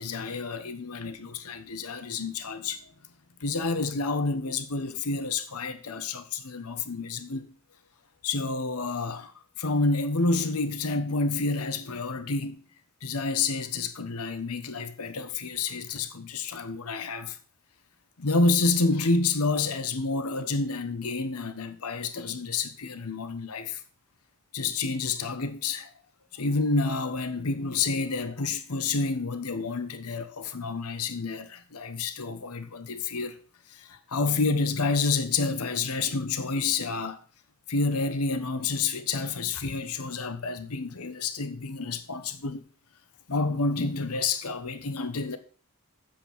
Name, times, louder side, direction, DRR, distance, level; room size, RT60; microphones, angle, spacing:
voice 1, 0.0-2.8 3.4-7.5 8.2-9.3 9.6-12.6 13.0-17.4 18.2-23.8 24.5-25.9 26.3-33.3 33.7-37.2 37.7-42.7 43.3-45.4, left 3 dB, 80° left, 1.1 m, -29 dB
8.9 x 7.5 x 5.9 m
head